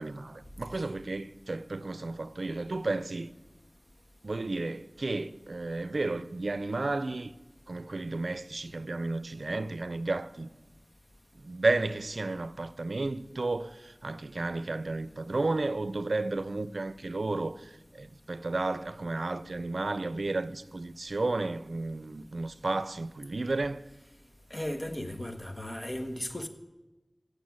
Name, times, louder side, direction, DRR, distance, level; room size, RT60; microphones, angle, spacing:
voice 1, 0.0-3.3 4.2-7.3 7.7-10.5 11.3-23.8, right 2 dB, 90° right, 0.5 m, -32 dB
voice 2, 24.5-26.5, left 1 dB, 30° left, 1.4 m, -36 dB
15.5 x 6.6 x 8.7 m
wide cardioid pair, 50°, 0 cm